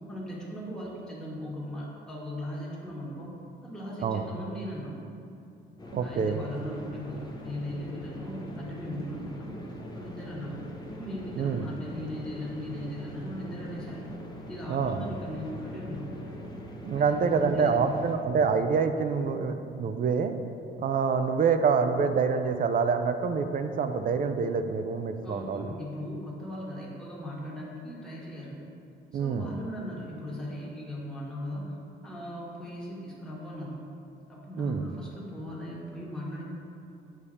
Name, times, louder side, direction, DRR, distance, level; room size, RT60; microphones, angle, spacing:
voice 1, 0.1-3.3 3.6-4.9 6.0-9.6 9.9-10.6 10.9-14.0 14.5-16.0 16.9-17.9 25.2-28.6 29.1-31.7 32.0-33.8 34.3-36.4, equal, 5° left, -6 dB, 1.3 m, -38 dB
sound 1, 5.8-18.2, left 1 dB, 20° left, 0.8 m, -42 dB
voice 2, 5.9-6.4 11.4-11.6 14.7-15.1 16.8-20.4 20.8-25.7 29.1-29.5 34.6-34.8, right 5 dB, 45° right, 8 dB, 0.4 m, -26 dB
7.1 x 2.8 x 4.9 m, 2.7 s
cardioid pair, 90°, 20 cm